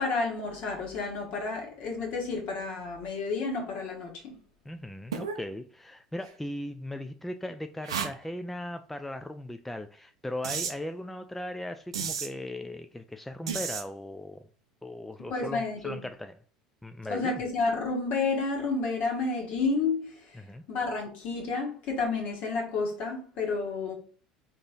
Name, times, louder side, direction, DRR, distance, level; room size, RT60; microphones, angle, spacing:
voice 1, 0.0-4.3 15.3-16.0 17.1-20.4 20.7-23.9, left 4 dB, 55° left, 1.4 m, -30 dB
voice 2, 4.7-14.4 14.8-16.4 16.8-17.4 20.3-20.6, left 1 dB, 5° left, 0.3 m, -38 dB
sound 1, 5.1-5.4 6.2-6.3 7.8-8.1 10.4-10.7 11.9-12.3 13.5-13.8, right 6 dB, 80° right, 0.5 m, -32 dB
3.7 x 2.9 x 3.8 m
figure-of-eight pair, 70°, 3 cm